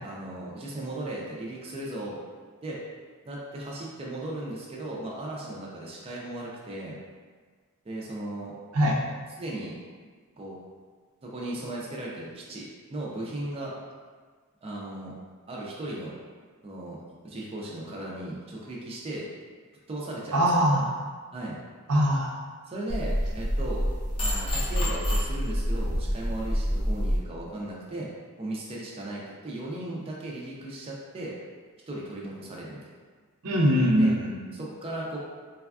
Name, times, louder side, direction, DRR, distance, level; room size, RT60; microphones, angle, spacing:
voice 1, 0.0-2.2 2.6-2.8 3.3-7.0 7.9-8.5 9.4-9.8 10.4-10.6 11.2-13.7 14.6-15.1 15.5-16.1 16.6-19.3 19.9-20.7 21.3-21.6 22.6-23.9 24.2-28.1 28.4-31.3 31.9-32.8 34.0-34.1 34.5-35.2, right 1 dB, 25° right, -4 dB, 0.4 m, -36 dB
voice 2, 20.3-20.9 21.9-22.4 33.4-34.3, equal, 75° right, -2 dB, 0.5 m, -22 dB
sound 1, 22.9-27.2, equal, 25° left, 0.6 m, -27 dB
3.2 x 2.2 x 2.3 m, 1.5 s
head